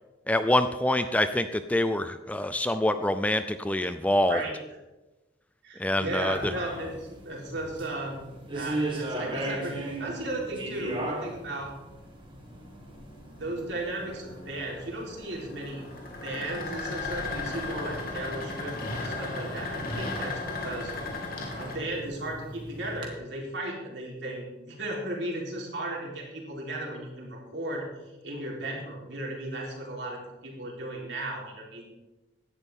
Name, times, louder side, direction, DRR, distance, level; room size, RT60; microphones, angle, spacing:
voice 1, 0.3-4.4 5.8-6.5, left 1 dB, 10° left, 10 dB, 0.4 m, -25 dB
voice 2, 5.6-11.7 13.4-15.9 16.2-20.9 21.6-27.9 28.2-31.8, right 1 dB, 65° right, -2 dB, 3.9 m, -35 dB
sound 1, 6.3-23.1, right 1 dB, 25° right, 2.1 m, -39 dB
sound 2, 11.9-21.8, left 2 dB, 50° left, 2.6 m, -36 dB
16.0 x 11.0 x 3.6 m, 1.1 s
head